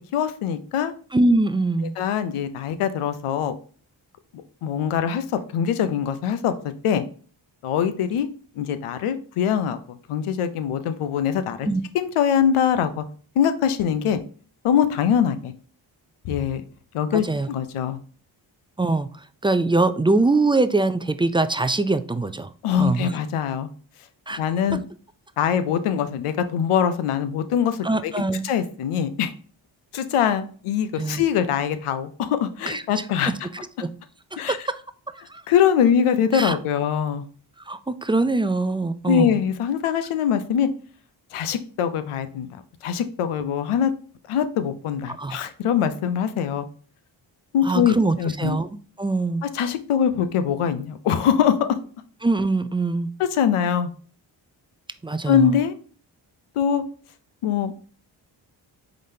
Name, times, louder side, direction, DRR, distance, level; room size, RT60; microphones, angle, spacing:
voice 1, 0.1-0.9 2.0-3.5 4.6-7.0 7.6-8.3 8.6-11.7 11.9-13.0 13.4-14.2 14.6-15.5 16.2-16.6 16.9-18.0 22.6-23.7 24.4-24.8 25.4-28.1 28.4-29.3 29.9-33.3 34.4-34.7 35.5-37.3 39.0-40.7 41.3-42.5 42.8-43.9 44.3-46.7 47.5-48.6 49.4-51.8 53.3-53.9 55.3-55.7 56.6-56.8 57.4-57.8, left 8 dB, 85° left, 11 dB, 0.7 m, -23 dB
voice 2, 1.1-1.9 11.6-11.8 17.1-17.5 18.8-19.1 19.4-22.5 22.8-23.1 24.3-24.4 27.8-28.5 31.0-31.2 32.7-33.0 33.8-33.9 34.3-34.8 35.3-35.4 36.3-36.6 37.7-39.4 45.1-45.5 47.6-49.5 52.2-53.1 55.0-55.5, right 2 dB, 10° right, 12 dB, 0.3 m, -23 dB
5.0 x 3.9 x 2.7 m, 0.42 s
supercardioid pair, 40°, 49 cm